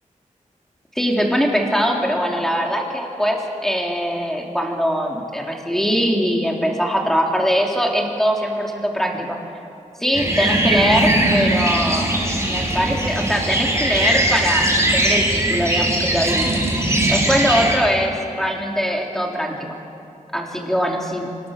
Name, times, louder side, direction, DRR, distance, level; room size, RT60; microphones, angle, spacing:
voice 1, 1.0-9.4 10.0-16.5 17.1-19.8 20.3-21.3, equal, 5° left, 0 dB, 3.5 m, -22 dB
sound 1, 10.1-17.8, right 1 dB, 20° right, 5.4 m, -20 dB
26.0 x 20.0 x 6.7 m, 2.6 s
wide cardioid pair, 85°, 14 cm